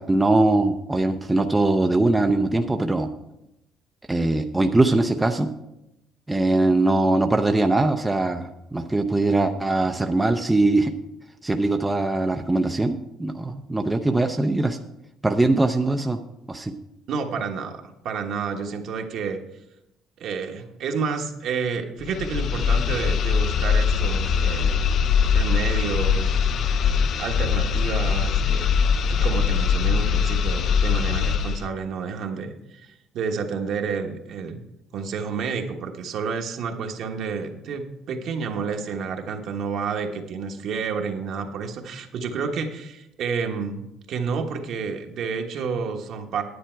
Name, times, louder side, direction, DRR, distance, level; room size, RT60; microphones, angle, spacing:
voice 1, 0.0-3.1 4.1-5.5 6.3-10.9 11.4-14.8 15.2-16.2 16.5-16.7, right 2 dB, 10° right, 5 dB, 0.5 m, -21 dB
voice 2, 17.1-19.4 20.2-26.4 27.2-28.8 29.1-34.6 34.9-46.4, right 5 dB, 55° right, 4 dB, 1.3 m, -30 dB
sound 1, 22.0-31.7, left 6 dB, 50° left, 0.5 m, -22 dB
10.0 x 8.9 x 4.5 m, 0.87 s
cardioid pair, 135°, 0 cm